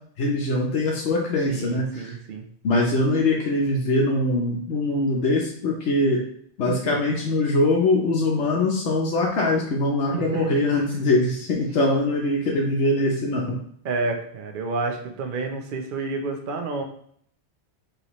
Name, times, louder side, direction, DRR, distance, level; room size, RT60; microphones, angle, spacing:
voice 1, 0.2-2.1 2.6-6.2 6.6-13.4, left 2 dB, 85° left, -1 dB, 1.1 m, -22 dB
voice 2, 1.5-2.4 6.6-7.0 10.1-11.0 13.8-16.8, right 3 dB, 55° right, 4 dB, 0.8 m, -30 dB
5.1 x 3.3 x 3.0 m, 0.64 s
omnidirectional pair, 1.1 m